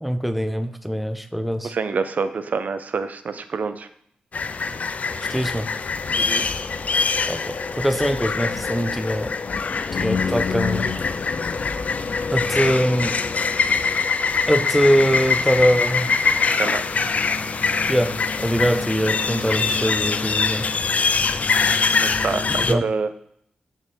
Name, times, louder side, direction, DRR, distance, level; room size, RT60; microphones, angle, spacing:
voice 1, 0.0-1.7 5.3-5.7 7.3-9.3 9.9-10.9 12.3-13.2 14.5-16.1 17.9-20.7 22.7-22.8, equal, ahead, 11 dB, 0.6 m, -22 dB
voice 2, 1.6-3.9 6.1-6.4 16.5-16.8 22.0-23.1, right 4 dB, 60° right, 11 dB, 0.6 m, -27 dB
sound 1, 4.3-22.7, left 5 dB, 50° left, 0.4 m, -23 dB
6.3 x 3.6 x 5.3 m, 0.70 s
cardioid pair, 65°, 3 cm